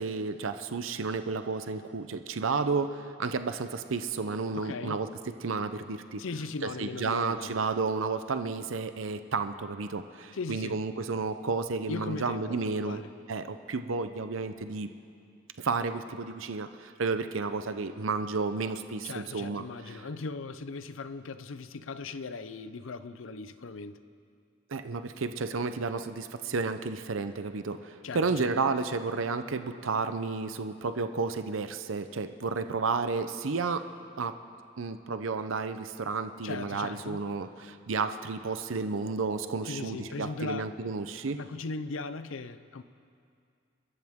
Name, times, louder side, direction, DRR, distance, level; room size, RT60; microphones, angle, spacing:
voice 1, 0.0-5.1 5.4-6.2 6.6-13.0 13.3-14.9 15.6-20.0 24.7-33.9 34.2-34.4 34.8-41.4, right 4 dB, 90° right, 9 dB, 0.7 m, -32 dB
voice 2, 4.5-5.0 6.2-7.5 10.3-10.8 11.9-13.1 19.0-24.0 28.0-28.5 36.4-37.3 39.7-40.7 41.4-42.8, left 3 dB, 85° left, 13 dB, 0.6 m, -38 dB
28.5 x 14.0 x 3.7 m, 2.4 s
head